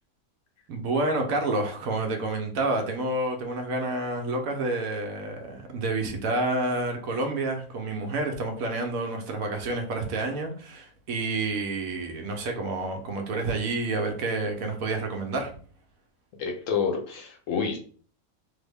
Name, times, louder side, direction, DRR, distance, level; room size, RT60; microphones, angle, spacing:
voice 1, 0.7-15.5, right 2 dB, 70° right, 3 dB, 1.1 m, -29 dB
voice 2, 16.4-17.8, left 6 dB, 65° left, 3 dB, 1.0 m, -28 dB
3.4 x 2.1 x 3.4 m, 0.44 s
omnidirectional pair, 1.5 m